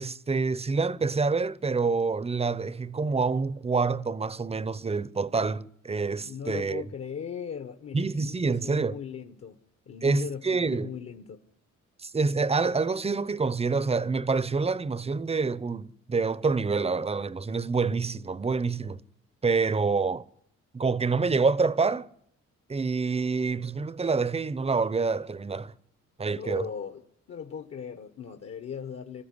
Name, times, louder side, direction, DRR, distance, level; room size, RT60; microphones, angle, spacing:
voice 1, 0.0-6.8 7.9-9.0 10.0-10.9 12.0-19.0 19.4-20.2 20.7-22.1 22.7-25.7 26.2-26.7, right 4 dB, 20° right, 0.8 m, -27 dB
voice 2, 6.2-9.6 9.8-11.4 26.3-27.0 27.3-29.2, left 7 dB, 50° left, 1.5 m, -38 dB
25.5 x 14.5 x 9.8 m
cardioid pair, 90°, 30 cm